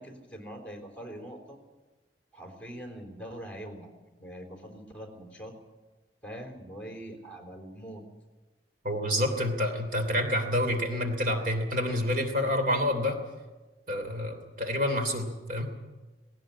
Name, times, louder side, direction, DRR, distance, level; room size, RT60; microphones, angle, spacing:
voice 1, 0.0-1.6 2.3-3.9 4.2-5.5 6.2-8.0, equal, 10° left, 4 dB, 3.8 m, -43 dB
voice 2, 8.8-13.2 13.9-15.7, left 1 dB, 50° right, 5 dB, 3.0 m, -28 dB
18.0 x 18.0 x 8.7 m, 1.2 s
head